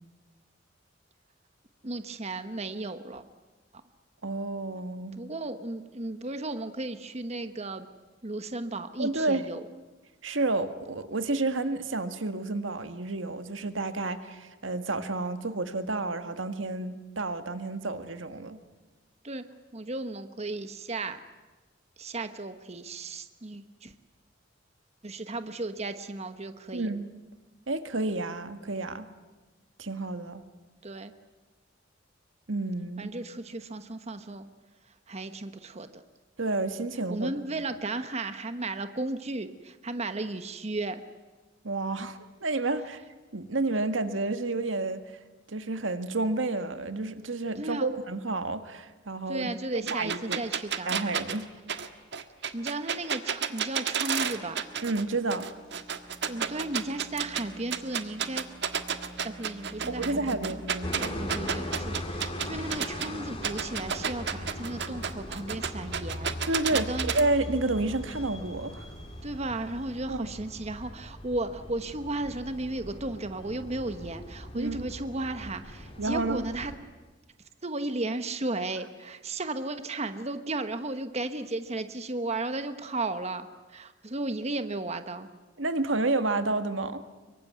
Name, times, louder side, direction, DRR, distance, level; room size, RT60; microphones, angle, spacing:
voice 1, 1.8-3.2 5.1-7.9 8.2-9.6 19.2-19.4 19.7-21.2 22.0-23.9 25.0-26.9 30.8-31.1 33.0-34.5 35.1-36.0 37.1-41.0 47.5-48.0 49.3-51.1 52.5-54.6 56.2-58.5 59.2-60.6 61.1-67.1 69.2-76.7 77.6-85.3, right 2 dB, 35° right, 9 dB, 1.2 m, -35 dB
voice 2, 4.2-5.2 9.0-9.4 10.2-18.6 26.7-27.1 27.7-29.0 29.8-30.5 32.5-33.1 36.4-37.3 41.6-43.0 43.3-45.2 45.5-49.5 49.9-50.4 50.9-51.5 54.8-55.5 59.9-61.1 66.5-68.8 70.1-70.3 74.5-74.9 76.0-76.5 85.6-87.0, right 2 dB, 85° right, 9 dB, 1.7 m, -30 dB
sound 1, 49.9-55.0 55.3-57.4 57.7-63.1 63.4-67.2, right 7 dB, 65° right, 1.6 m, -31 dB
sound 2, 54.2-70.0, right 1 dB, 5° left, 4.5 m, -49 dB
Delivery Van Pass, 60.8-76.8, left 1 dB, 30° left, 3.2 m, -40 dB
25.0 x 23.5 x 9.5 m, 1.2 s
head